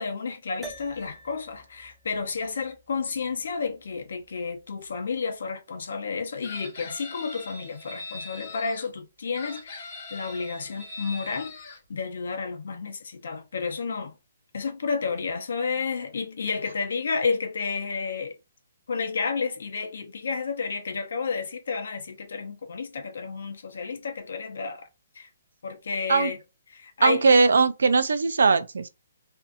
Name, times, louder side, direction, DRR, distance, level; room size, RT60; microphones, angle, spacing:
voice 1, 0.0-11.5 11.9-14.1 14.5-18.3 18.9-24.9 25.2-25.3 25.6-26.4 26.7-27.2, left 5 dB, 65° left, 0.8 m, -31 dB
sound 1, 0.6-5.2, right 2 dB, ahead, 0.4 m, -49 dB
Chicken rooster, 6.4-8.9 9.3-11.8, left 2 dB, 30° left, 0.9 m, -41 dB
voice 2, 27.0-28.9, right 4 dB, 80° right, 0.4 m, -20 dB
2.6 x 2.4 x 2.5 m
hypercardioid pair, 170°, 0 cm